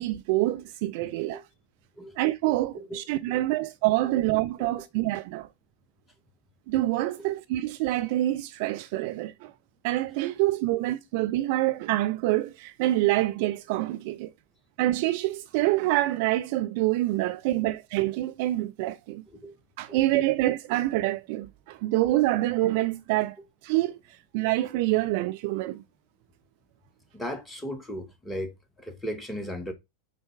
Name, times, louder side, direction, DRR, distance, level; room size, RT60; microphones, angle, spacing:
voice 1, 0.0-1.4 2.2-5.5 6.7-9.5 9.8-14.3 14.8-19.2 19.8-23.4 23.6-24.0 24.3-25.8, right 16 dB, 45° right, 0.4 m, -26 dB
voice 2, 1.0-1.4 2.0-2.2 2.8-3.4 4.0-4.1 4.6-4.7 7.2-7.4 10.6-10.8 19.3-19.6 19.9-20.3 27.1-29.7, equal, 10° left, 1.4 m, -38 dB
7.5 x 4.2 x 3.3 m
figure-of-eight pair, 90°, 0 cm